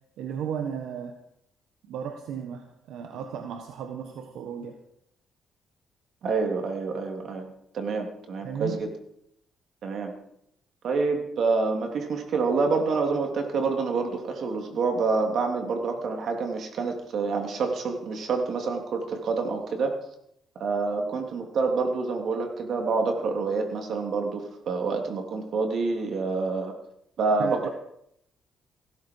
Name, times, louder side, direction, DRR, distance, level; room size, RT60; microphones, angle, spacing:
voice 1, 0.2-1.2 1.9-4.8 8.4-8.8 27.4-27.7, right 7 dB, 85° right, 5 dB, 1.3 m, -34 dB
voice 2, 6.2-7.5 7.7-8.9 9.8-10.1 10.8-20.0 20.5-26.7 27.2-27.7, right 4 dB, 65° right, 3 dB, 3.1 m, -27 dB
16.0 x 14.0 x 4.8 m, 0.74 s
cardioid pair, 90°, 0 cm